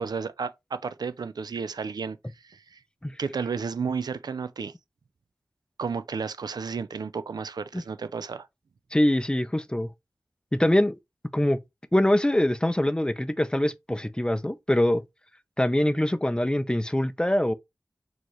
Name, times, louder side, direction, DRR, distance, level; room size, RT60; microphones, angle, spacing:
voice 1, 0.0-2.2 2.4-2.8 3.2-4.7 5.8-8.5, right 5 dB, 85° right, 0.4 m, -32 dB
voice 2, 8.9-9.9 10.5-11.0 11.3-11.6 11.9-15.0 15.6-17.5, left 1 dB, 15° left, 0.5 m, -23 dB
4.4 x 2.9 x 3.0 m
cardioid pair, 40°, 7 cm